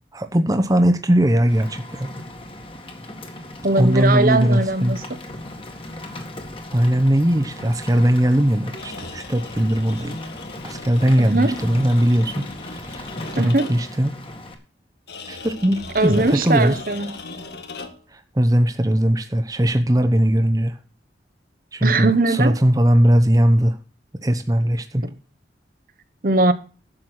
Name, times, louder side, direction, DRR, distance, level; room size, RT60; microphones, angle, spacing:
voice 1, 0.1-2.1 3.8-5.0 6.7-10.2 10.6-14.2 15.3-16.8 18.1-20.8 21.7-23.8 24.1-25.1, equal, 20° right, 0.9 m, -19 dB
Rain, 1.5-14.5, left 1 dB, 30° left, 2.0 m, -37 dB
voice 2, 3.6-5.0 11.2-11.6 13.4-13.7 15.9-17.2 21.8-22.6 25.0-25.1 26.2-26.5, right 2 dB, 50° right, 1.0 m, -20 dB
sound 1, 8.7-14.0 15.1-18.2, left 3 dB, 65° left, 1.6 m, -39 dB
12.0 x 7.6 x 6.2 m
head